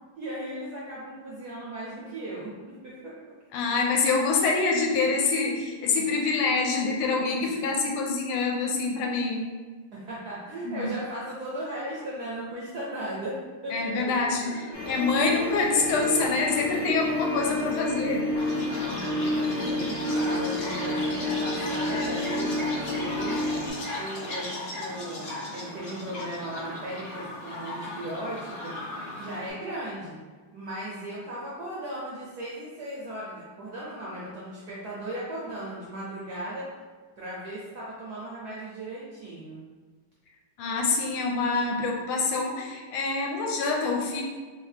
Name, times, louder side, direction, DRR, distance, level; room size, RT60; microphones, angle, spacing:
voice 1, 0.2-3.1 9.9-14.3 14.6-14.8 18.8-28.7 29.2-30.2 30.5-36.7 37.2-39.6, right 1 dB, 70° right, -6 dB, 0.9 m, -37 dB
voice 2, 3.5-9.5 10.6-10.8 13.7-18.2 40.6-44.2, left 4 dB, 80° left, 0 dB, 1.5 m, -26 dB
sound 1, 14.7-23.7, left 1 dB, 40° left, 0.8 m, -29 dB
Chirp tweet, 18.4-29.5, left 2 dB, 60° left, 1.5 m, -37 dB
3.5 x 2.9 x 3.3 m, 1.4 s
omnidirectional pair, 2.4 m